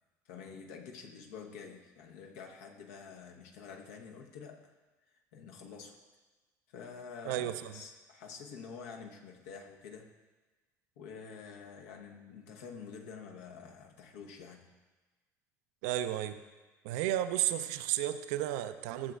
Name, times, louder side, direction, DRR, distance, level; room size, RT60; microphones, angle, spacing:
voice 1, 0.3-4.7 5.3-6.0 6.7-10.1 11.0-14.7, left 6 dB, 65° left, 2 dB, 0.9 m, -48 dB
voice 2, 7.2-7.7 15.8-16.4 16.8-19.1, right 13 dB, 65° right, 10 dB, 0.5 m, -33 dB
14.0 x 7.7 x 2.4 m, 1.2 s
figure-of-eight pair, 60°, 9 cm